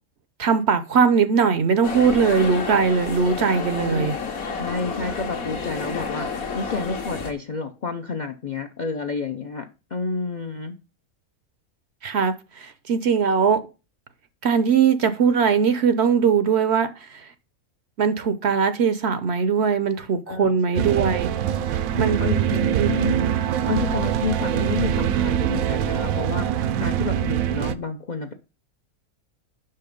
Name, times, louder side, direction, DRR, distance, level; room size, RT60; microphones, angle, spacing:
voice 1, 0.4-4.1 12.0-13.6 14.4-17.3 18.0-21.3 22.0-22.2 22.8-22.9, right 6 dB, 60° right, 0.8 m, -20 dB
sound 1, 1.8-7.3, left 5 dB, 75° left, 1.6 m, -30 dB
voice 2, 3.7-4.2 4.5-10.8 20.3-20.6 21.9-28.3, left 4 dB, 55° left, 0.5 m, -30 dB
sound 2, 20.8-27.8, right 10 dB, 80° right, 1.0 m, -23 dB
5.7 x 5.6 x 5.2 m
omnidirectional pair, 1.5 m